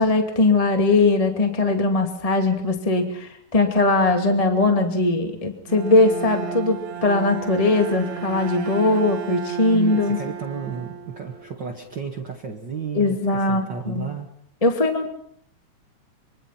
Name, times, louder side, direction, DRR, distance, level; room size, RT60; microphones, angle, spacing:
voice 1, 0.0-10.2 12.9-14.0 14.6-15.1, left 2 dB, 15° left, 5 dB, 2.0 m, -20 dB
Bowed string instrument, 5.7-11.6, right 7 dB, 60° right, 2.6 m, -33 dB
voice 2, 9.7-14.3, right 6 dB, 40° right, 2 dB, 2.3 m, -33 dB
25.5 x 24.0 x 5.9 m, 0.64 s
omnidirectional pair, 3.6 m